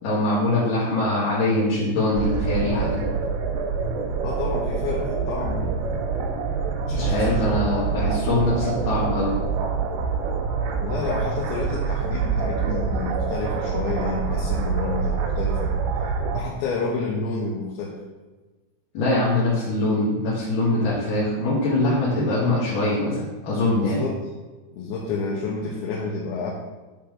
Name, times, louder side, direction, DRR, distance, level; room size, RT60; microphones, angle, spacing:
voice 1, 0.0-3.0 6.9-9.4 18.9-24.1, left 2 dB, 55° left, -9 dB, 3.3 m, -23 dB
sound 1, 2.2-16.4, right 5 dB, 80° right, 3.0 m, -26 dB
voice 2, 4.2-5.8 6.9-7.9 10.8-15.7 16.3-18.0 23.7-24.2 24.7-26.5, left 4 dB, 90° left, -3 dB, 3.3 m, -30 dB
10.5 x 4.5 x 5.3 m, 1.2 s
omnidirectional pair, 5.0 m